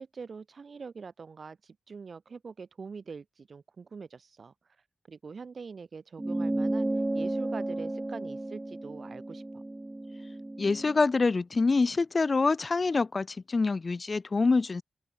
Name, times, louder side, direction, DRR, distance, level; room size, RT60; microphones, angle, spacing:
voice 1, 0.0-4.5 5.1-6.9 7.1-9.6, right 5 dB, 50° right, 6.7 m, -44 dB
sound 1, 6.2-11.0, right 2 dB, 15° right, 2.7 m, -33 dB
voice 2, 10.6-14.8, left 4 dB, 35° left, 1.0 m, -26 dB
open air
wide cardioid pair, 130°, 0 cm